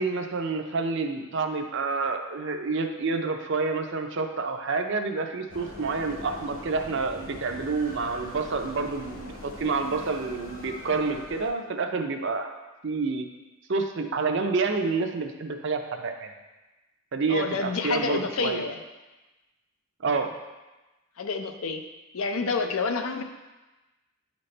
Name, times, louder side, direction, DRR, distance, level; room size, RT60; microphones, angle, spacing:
voice 1, 0.0-12.5 12.8-13.2 13.7-16.3 17.1-18.6 20.0-20.3, right 4 dB, 55° right, 5 dB, 0.6 m, -28 dB
sound 1, 5.5-11.5, left 1 dB, 40° left, 1.1 m, -42 dB
voice 2, 17.3-18.8 21.2-21.8 22.1-23.2, left 4 dB, 75° left, 6 dB, 0.6 m, -28 dB
9.7 x 4.1 x 3.3 m, 1.1 s
head